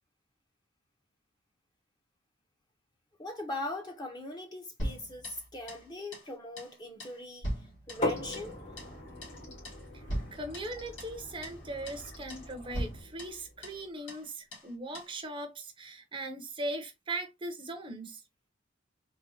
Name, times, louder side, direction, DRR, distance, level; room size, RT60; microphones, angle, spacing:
voice 1, 3.2-7.5 7.9-8.6, left 1 dB, 20° left, 0.6 m, -40 dB
sound 1, 4.8-5.9 6.1-6.3 6.6-6.7 7.0-8.5 8.8-9.0 9.2-9.4 9.6-9.8 10.1-11.2 11.4-11.6 11.9-12.0 12.3-12.5 12.7-13.8 14.1-14.2 14.5-14.7 14.9-15.1, equal, 90° left, 2.1 m, -39 dB
sound 2, 7.9-13.0, equal, 75° left, 1.6 m, -50 dB
sound 3, 8.0-13.7, left 1 dB, 40° left, 1.0 m, -40 dB
voice 2, 9.9-18.2, right 2 dB, 25° right, 0.6 m, -39 dB
3.9 x 2.1 x 2.7 m
head